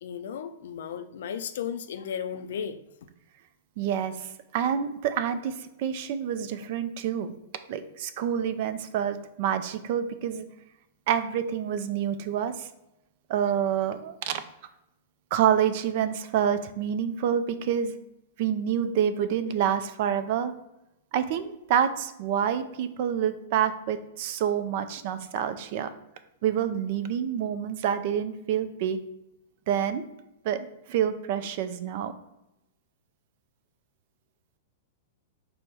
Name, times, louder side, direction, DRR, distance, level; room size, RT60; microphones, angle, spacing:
voice 1, 0.0-2.8, left 8 dB, 70° left, 11 dB, 0.3 m, -34 dB
voice 2, 3.8-7.4 7.7-10.5 11.1-12.7 13.3-14.4 15.3-18.0 18.4-20.5 21.1-25.9 26.4-29.0 29.7-30.0 30.4-32.1, right 9 dB, 55° right, 10 dB, 0.4 m, -27 dB
4.4 x 2.1 x 4.5 m, 0.88 s
hypercardioid pair, 120°, 0 cm